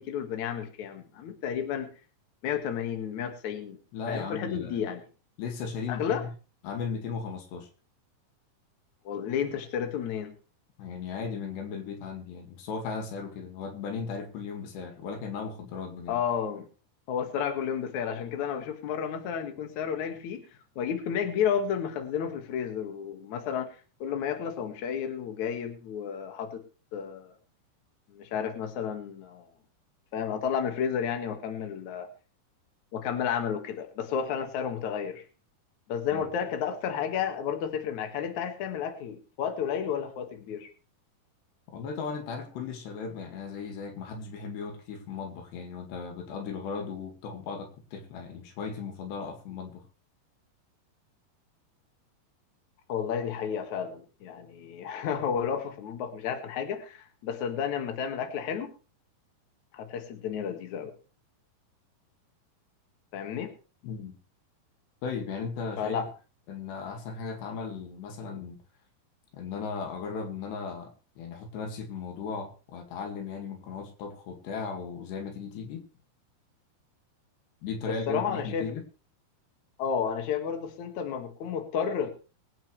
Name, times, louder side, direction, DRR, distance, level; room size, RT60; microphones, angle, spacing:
voice 1, 0.0-1.9 2.4-3.8 4.1-5.0 5.9-6.2 9.0-10.3 16.1-16.6 17.1-20.4 20.8-26.6 26.9-27.3 28.1-29.5 30.1-32.1 32.9-35.2 35.9-40.7 52.9-58.7 59.7-60.9 63.1-63.5 65.8-66.1 77.9-78.7 79.8-82.1, left 8 dB, 55° left, 5 dB, 2.8 m, -32 dB
voice 2, 3.9-4.8 5.4-6.3 6.6-7.7 10.8-16.2 36.1-36.2 41.7-49.9 63.8-64.2 65.0-66.0 66.5-68.6 69.3-75.8 77.6-78.8, left 5 dB, 90° left, 4 dB, 4.2 m, -36 dB
22.0 x 8.9 x 3.2 m, 0.35 s
omnidirectional pair, 4.7 m